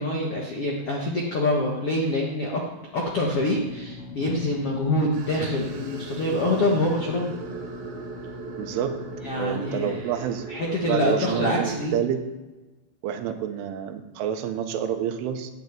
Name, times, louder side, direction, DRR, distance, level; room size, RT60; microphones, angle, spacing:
voice 1, 0.0-2.6 2.9-7.3 9.2-10.0 10.5-12.0, left 1 dB, 80° left, -1 dB, 1.3 m, -25 dB
sound 1, 3.2-10.0, left 4 dB, 25° left, 2.9 m, -41 dB
sound 2, 5.1-11.9, right 5 dB, 60° right, 3.8 m, -39 dB
voice 2, 8.6-9.0 9.4-10.5 10.9-12.2 13.0-15.5, right 9 dB, 90° right, 6 dB, 3.7 m, -28 dB
11.0 x 10.5 x 9.0 m, 1.1 s
omnidirectional pair, 5.5 m